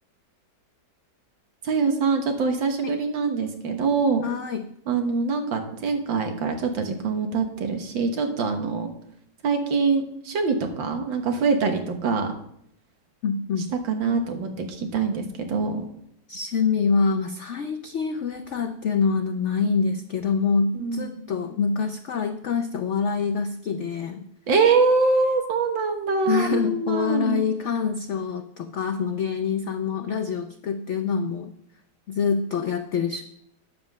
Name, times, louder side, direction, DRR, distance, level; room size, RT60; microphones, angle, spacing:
voice 1, 1.6-4.2 4.9-8.9 9.4-12.3 13.8-15.9 20.8-21.1 24.5-27.4, right 4 dB, 90° right, 4 dB, 2.1 m, -24 dB
voice 2, 4.2-4.7 13.2-13.7 16.3-24.3 26.3-31.5 32.1-33.2, left 5 dB, 90° left, 8 dB, 0.6 m, -25 dB
9.3 x 7.3 x 6.2 m, 0.72 s
omnidirectional pair, 2.0 m